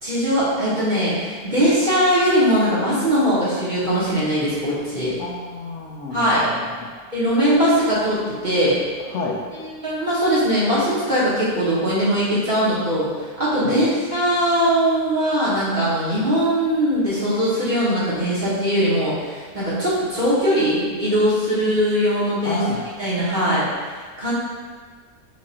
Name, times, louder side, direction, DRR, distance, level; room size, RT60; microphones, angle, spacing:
voice 1, 0.0-5.1 6.1-6.5 7.1-8.8 9.5-22.6 23.0-24.3, equal, 30° right, -10 dB, 1.0 m, -20 dB
voice 2, 5.2-6.9 9.1-9.4 13.6-13.8 22.4-22.8, left 3 dB, 75° left, -4 dB, 0.6 m, -30 dB
4.6 x 2.5 x 4.1 m, 1.5 s
omnidirectional pair, 1.9 m